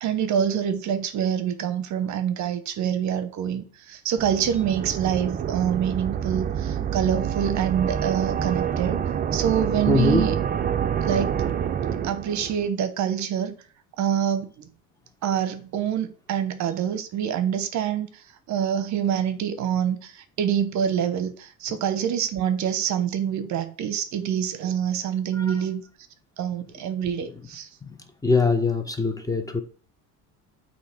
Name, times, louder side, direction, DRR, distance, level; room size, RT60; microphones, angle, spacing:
voice 1, 0.0-9.0 9.3-10.3 11.0-11.3 12.0-13.5 14.0-14.7 15.2-25.8 26.4-27.7, right 8 dB, 50° right, 0.8 m, -26 dB
sound 1, 4.2-12.7, right 8 dB, 25° right, 0.4 m, -27 dB
voice 2, 9.9-10.3 25.3-25.5 27.8-28.0 28.2-29.6, left 3 dB, 10° left, 0.8 m, -23 dB
8.2 x 2.8 x 4.4 m
supercardioid pair, 105°, 37 cm